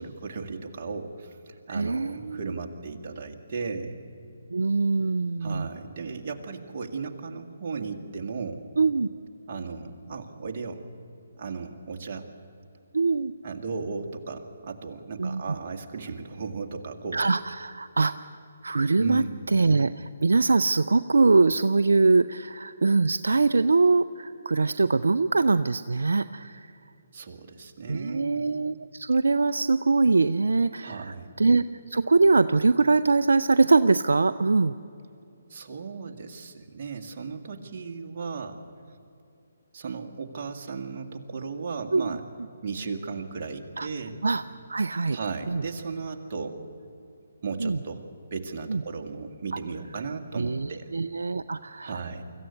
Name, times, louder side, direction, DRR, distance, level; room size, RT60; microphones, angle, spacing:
voice 1, 0.0-4.0 5.4-8.7 9.5-10.8 11.4-12.3 13.4-17.2 19.0-19.5 27.1-28.4 30.8-31.3 35.5-38.6 39.7-42.2 42.6-44.2 45.1-46.6 47.4-48.0 48.3-50.9 51.8-52.2, right 4 dB, 45° right, 3 dB, 2.0 m, -36 dB
voice 2, 1.7-2.6 4.5-5.7 8.8-9.1 12.9-13.3 15.2-15.4 17.1-18.1 18.6-26.7 27.9-31.6 31.9-34.8 41.9-42.2 43.8-43.9 44.2-44.4 44.7-45.2 45.5-45.6 47.6-47.8 48.7-48.8 50.3-52.0, right 3 dB, 75° right, 12 dB, 0.5 m, -23 dB
24.5 x 14.5 x 8.4 m, 2.7 s
figure-of-eight pair, 145°, 0 cm